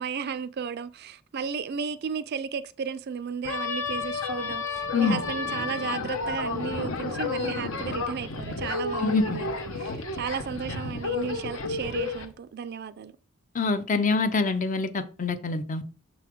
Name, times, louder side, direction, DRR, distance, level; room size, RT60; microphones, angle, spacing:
voice 1, 0.0-13.1, right 6 dB, 50° right, 0.3 m, -34 dB
sound 1, 3.4-12.3, left 4 dB, 65° left, 0.9 m, -31 dB
voice 2, 9.0-9.4 13.5-15.8, left 4 dB, 35° left, 0.5 m, -25 dB
6.6 x 3.9 x 4.5 m
head